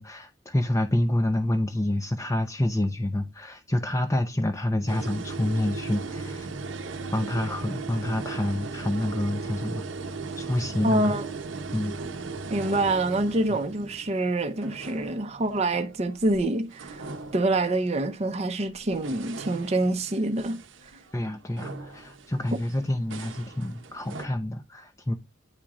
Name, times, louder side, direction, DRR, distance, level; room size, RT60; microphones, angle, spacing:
voice 1, 0.0-6.5 7.1-9.8 10.4-11.2 11.7-11.9 21.1-25.1, left 1 dB, 15° left, 0.6 m, -28 dB
sound 1, 4.9-16.4 16.7-18.1 18.7-24.3, right 4 dB, 70° right, 0.8 m, -38 dB
voice 2, 10.8-11.3 12.5-20.6, right 2 dB, 35° right, 0.7 m, -26 dB
9.8 x 3.7 x 3.0 m
head